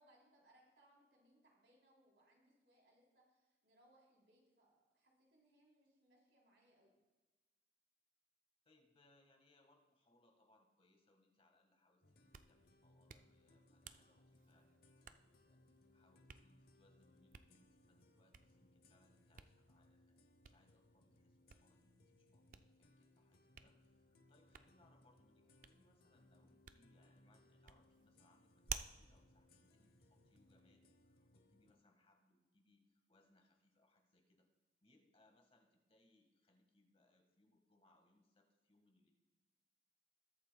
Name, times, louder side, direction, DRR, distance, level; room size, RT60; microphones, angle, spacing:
voice 1, 0.0-7.0, right 1 dB, 80° right, -2 dB, 3.5 m, -72 dB
voice 2, 8.6-15.6 15.9-20.2 20.4-34.5 34.8-39.1, left 2 dB, 35° left, 3 dB, 1.6 m, -75 dB
sound 1, 12.0-31.7, left 1 dB, 60° left, 0.8 m, -70 dB
Hands, 12.1-30.6, right 7 dB, 50° right, 0.4 m, -57 dB
20.5 x 8.5 x 2.3 m, 1.2 s
head